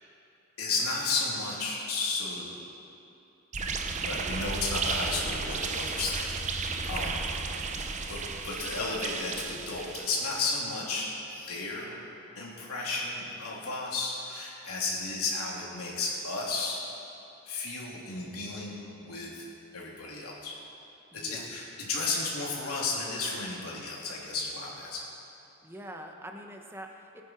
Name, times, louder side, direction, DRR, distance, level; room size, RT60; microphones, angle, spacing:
voice 1, 0.6-2.5 4.0-7.2 8.0-12.0 12.3-16.8 17.4-19.5 19.7-20.6 21.1-25.0, left 3 dB, 85° left, -4 dB, 3.2 m, -33 dB
sound 1, 3.5-10.6, right 4 dB, 35° right, 0.7 m, -34 dB
voice 2, 6.8-7.2 21.1-21.5 25.6-27.2, equal, 10° right, 2 dB, 1.0 m, -44 dB
21.5 x 9.5 x 4.5 m, 2.8 s
head